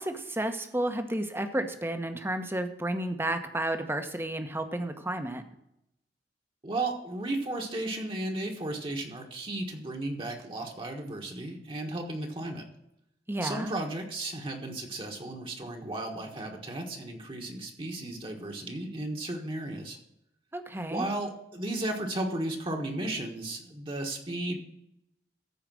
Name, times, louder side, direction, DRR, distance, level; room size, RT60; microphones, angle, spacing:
voice 1, 0.0-5.4 13.3-13.7 20.5-21.1, right 1 dB, 15° right, 7 dB, 1.0 m, -32 dB
voice 2, 6.6-12.7 13.4-20.0 20.9-24.6, right 2 dB, 30° right, 1 dB, 1.4 m, -34 dB
14.5 x 4.9 x 6.2 m, 0.81 s
head